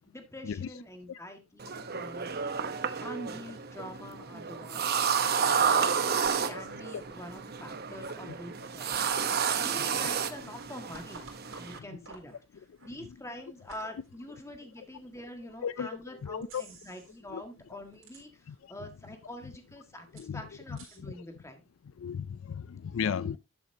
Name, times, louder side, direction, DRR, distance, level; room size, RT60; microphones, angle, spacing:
voice 1, 0.0-2.5 3.0-5.1 5.5-11.2 11.6-12.4 12.8-21.6 23.0-23.4, left 1 dB, 15° left, 1.7 m, -45 dB
sound 1, 1.6-11.8, right 6 dB, 50° right, 0.9 m, -31 dB
sound 2, 6.2-15.3 15.8-15.9 16.4-17.3 17.6-18.7 19.0-19.1 19.2-21.0, right 3 dB, 80° right, 4.3 m, -55 dB
voice 2, 15.6-16.6 17.3-17.4 18.5-18.9 20.1-21.2 22.0-23.4, left 7 dB, 80° left, 0.4 m, -36 dB
11.5 x 7.2 x 2.8 m
head